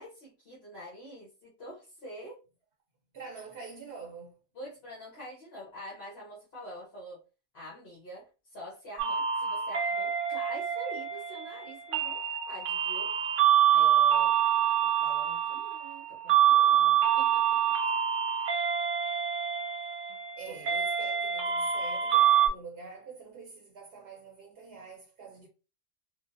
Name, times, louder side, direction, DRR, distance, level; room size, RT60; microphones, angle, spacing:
voice 1, 0.0-2.4 4.5-7.2 7.5-12.2 12.5-13.1 13.7-14.3 14.8-17.6 20.1-20.2 20.5-20.6, equal, 55° left, 1.3 m, -46 dB
voice 2, 3.1-4.4 20.4-25.5, right 4 dB, 60° right, 0.9 m, -46 dB
sound 1, 9.0-22.5, right 9 dB, 85° right, 1.0 m, -26 dB
3.6 x 2.1 x 2.5 m
omnidirectional pair, 1.2 m